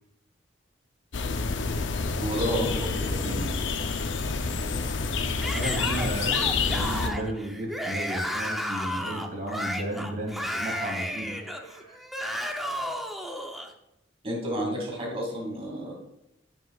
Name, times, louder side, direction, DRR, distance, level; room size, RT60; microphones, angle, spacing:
sound 1, 1.1-7.1, left 4 dB, 80° left, 0.6 m, -28 dB
voice 1, 2.2-3.5 14.2-15.9, equal, 35° right, -2 dB, 2.4 m, -31 dB
Yell / Screaming, 5.4-13.7, equal, ahead, 0.6 m, -33 dB
voice 2, 5.5-12.0, right 1 dB, 50° right, -3 dB, 2.1 m, -34 dB
10.5 x 6.3 x 2.4 m, 0.84 s
head